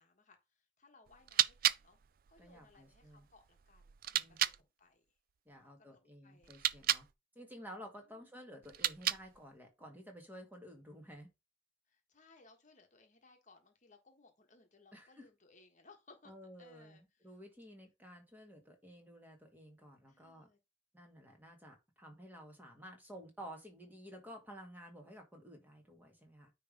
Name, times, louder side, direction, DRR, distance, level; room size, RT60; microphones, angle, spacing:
voice 1, 0.0-2.0 2.3-5.0 5.5-6.6 8.0-8.3 11.9-16.3 16.6-17.3 20.1-20.6, left 3 dB, 40° left, 1.4 m, -64 dB
sound 1, 1.1-4.6 6.4-7.1 8.6-9.5, right 12 dB, 50° right, 0.4 m, -35 dB
voice 2, 2.4-3.2 4.1-4.4 5.5-7.1 7.4-11.3 14.9-15.3 16.3-20.5 20.9-26.5, equal, 10° right, 1.9 m, -53 dB
9.4 x 3.4 x 5.2 m
head